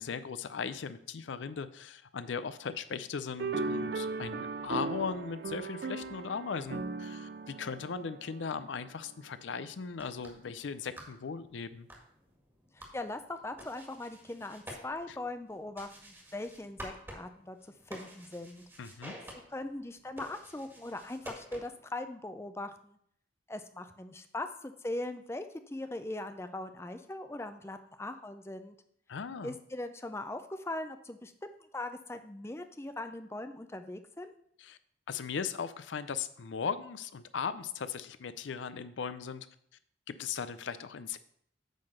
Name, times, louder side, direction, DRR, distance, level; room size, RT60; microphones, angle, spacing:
voice 1, 0.0-11.9 15.1-15.2 18.8-19.1 29.1-29.6 34.6-34.8 35.1-39.5 40.1-41.2, left 6 dB, 85° left, 13 dB, 0.5 m, -38 dB
sound 1, 3.4-9.0, right 3 dB, 55° right, 0.4 m, -37 dB
sound 2, 9.9-21.9, equal, 15° right, 1.7 m, -51 dB
voice 2, 12.7-17.6 17.9-18.6 19.5-23.0 23.5-28.8 29.4-31.3 31.7-34.3, left 2 dB, 15° left, 8 dB, 0.5 m, -40 dB
9.0 x 3.8 x 6.4 m, 0.67 s
head